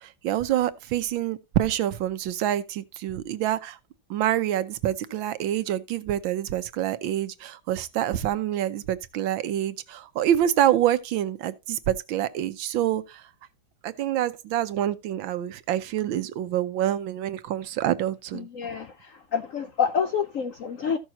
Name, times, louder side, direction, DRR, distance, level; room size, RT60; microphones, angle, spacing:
voice 1, 0.0-3.8 4.1-13.3 13.8-18.5, right 12 dB, 80° right, 1.5 m, -26 dB
voice 2, 18.3-21.0, left 7 dB, 65° left, 0.8 m, -28 dB
14.5 x 6.4 x 2.8 m
omnidirectional pair, 2.1 m